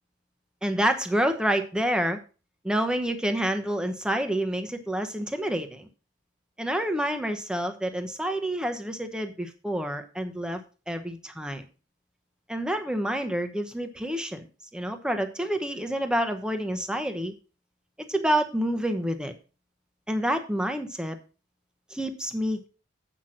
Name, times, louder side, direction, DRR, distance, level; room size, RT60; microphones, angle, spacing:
voice 1, 0.6-2.2 2.6-5.9 6.6-10.6 10.9-11.6 12.5-14.5 14.7-17.3 18.1-19.3 20.1-21.2 21.9-22.7, right 1 dB, 5° right, 7 dB, 0.9 m, -28 dB
8.2 x 6.0 x 6.2 m, 0.35 s
head